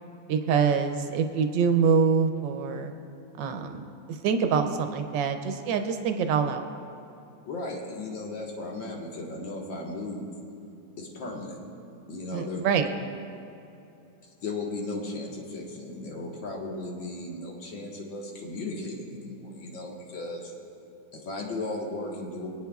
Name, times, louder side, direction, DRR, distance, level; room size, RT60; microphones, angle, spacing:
voice 1, 0.3-2.9 3.4-6.7 12.3-12.9, right 6 dB, 75° right, 6 dB, 1.3 m, -25 dB
voice 2, 7.4-10.3 11.0-11.6 12.1-12.6 14.4-20.5 21.1-22.5, left 2 dB, 75° left, -1 dB, 2.2 m, -36 dB
23.5 x 9.0 x 2.3 m, 2.8 s
omnidirectional pair, 2.1 m